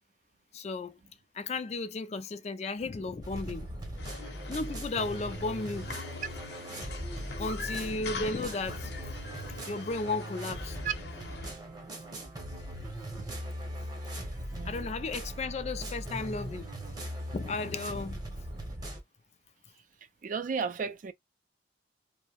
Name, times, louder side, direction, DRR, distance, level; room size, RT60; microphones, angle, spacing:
voice 1, 0.5-1.0 1.3-3.7 4.5-5.9 7.4-8.9 9.7-10.8 14.6-16.7 17.3-18.2, left 3 dB, 35° left, 0.3 m, -34 dB
sound 1, 3.2-19.0, right 1 dB, 20° right, 0.8 m, -40 dB
sound 2, 4.0-11.5, left 4 dB, 60° left, 0.7 m, -43 dB
voice 2, 14.5-14.9 20.2-21.1, right 6 dB, 45° right, 0.3 m, -34 dB
2.6 x 2.1 x 2.8 m
head